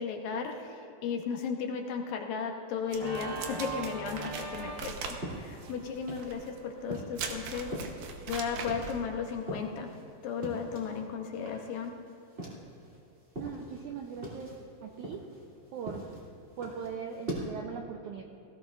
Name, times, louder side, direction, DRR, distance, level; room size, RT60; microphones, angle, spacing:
voice 1, 0.0-7.9 8.3-9.9 10.2-11.9, left 6 dB, 75° left, 3 dB, 2.6 m, -35 dB
Organ, 2.9-7.8, right 3 dB, 40° right, 0.7 m, -43 dB
sound 1, 2.9-9.0, right 6 dB, 70° right, 2.4 m, -41 dB
sound 2, 4.9-6.5 6.9-11.0 11.3-13.0 13.3-17.5, right 1 dB, 20° right, 2.6 m, -42 dB
voice 2, 13.4-14.5 14.8-15.2 15.7-16.0 16.6-18.2, right 6 dB, 85° right, 2 dB, 1.7 m, -40 dB
19.0 x 16.5 x 2.5 m, 2.8 s
omnidirectional pair, 4.4 m